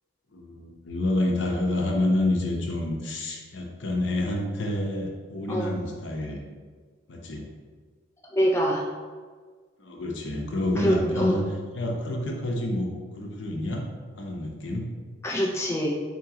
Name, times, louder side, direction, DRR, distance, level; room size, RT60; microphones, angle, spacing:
voice 1, 0.3-6.4 7.1-7.4 9.8-11.4 11.7-12.9 13.2-13.8 14.2-14.9, left 1 dB, 65° left, 0 dB, 0.7 m, -28 dB
voice 2, 8.3-8.8 10.8-11.4 15.2-15.9, equal, 15° left, -2 dB, 0.3 m, -24 dB
3.8 x 3.0 x 3.7 m, 1.5 s
head